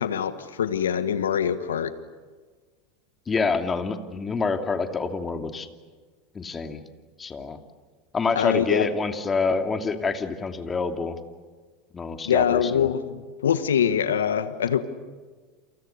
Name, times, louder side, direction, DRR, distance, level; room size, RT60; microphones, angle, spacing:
voice 1, 0.0-1.9 8.3-8.9 12.2-14.8, left 8 dB, 75° left, 12 dB, 1.4 m, -24 dB
voice 2, 3.3-5.7 6.3-6.8 7.2-7.6 8.1-11.2 11.9-12.9, left 4 dB, 25° left, 6 dB, 2.9 m, -27 dB
29.5 x 28.0 x 6.9 m, 1.4 s
hypercardioid pair, 80°, 0 cm